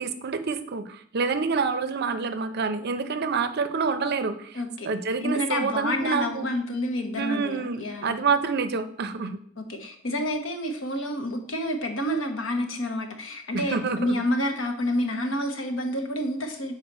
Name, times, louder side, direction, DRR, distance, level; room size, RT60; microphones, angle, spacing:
voice 1, 0.0-4.6 4.9-6.5 7.2-9.4 13.5-14.2, right 5 dB, 55° right, 10 dB, 0.5 m, -27 dB
voice 2, 4.5-4.9 5.2-8.3 9.6-16.8, left 1 dB, 75° left, 5 dB, 1.0 m, -29 dB
6.0 x 3.9 x 4.2 m, 0.63 s
head